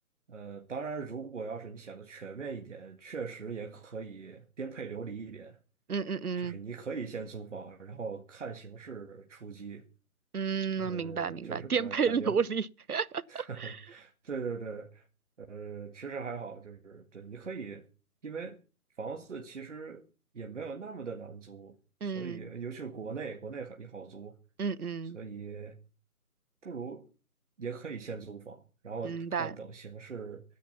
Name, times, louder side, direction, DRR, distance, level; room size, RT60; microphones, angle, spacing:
voice 1, 0.3-5.6 6.4-9.9 10.7-12.4 13.3-15.1 15.4-17.8 18.2-18.6 19.0-20.0 20.3-21.8 22.0-24.4 25.1-25.8 26.6-27.0 27.6-30.4, right 5 dB, 55° right, 1.9 m, -40 dB
voice 2, 5.9-6.6 10.3-13.8 22.0-22.4 24.6-25.2 29.0-29.5, right 6 dB, 80° right, 1.0 m, -31 dB
16.5 x 10.5 x 5.8 m
figure-of-eight pair, 160°, 44 cm